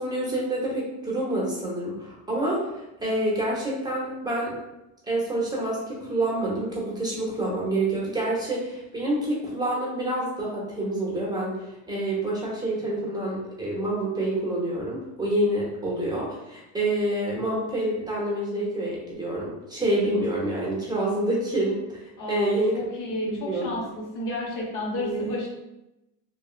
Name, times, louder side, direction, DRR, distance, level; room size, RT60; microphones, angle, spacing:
voice 1, 0.0-4.6 5.1-11.6 11.9-22.8 23.2-23.8 25.0-25.4, right 1 dB, 10° right, -5 dB, 1.0 m, -27 dB
voice 2, 22.2-25.5, left 1 dB, 50° left, -2 dB, 1.2 m, -31 dB
3.0 x 2.6 x 2.4 m, 0.92 s
supercardioid pair, 105°, 43 cm